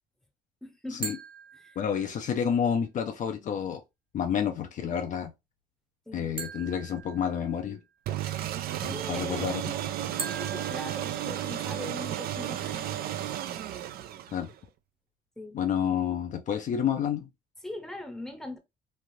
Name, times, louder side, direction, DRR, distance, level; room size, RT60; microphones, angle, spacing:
voice 1, 0.6-1.1 1.6-1.8 6.1-6.3 8.9-9.7 10.1-12.9 13.7-13.9 15.4-15.6 17.6-18.6, left 1 dB, ahead, 0.7 m, -41 dB
sound 1, 1.0-2.3 6.4-7.9 10.2-11.9, right 4 dB, 30° right, 0.7 m, -41 dB
voice 2, 1.8-3.8 4.1-5.3 6.1-7.8 8.7-9.7 14.3-14.5 15.5-17.3, left 8 dB, 50° left, 0.5 m, -29 dB
sound 2, 8.1-14.6, right 11 dB, 65° right, 0.4 m, -33 dB
3.2 x 2.4 x 2.6 m
cardioid pair, 110°, 17 cm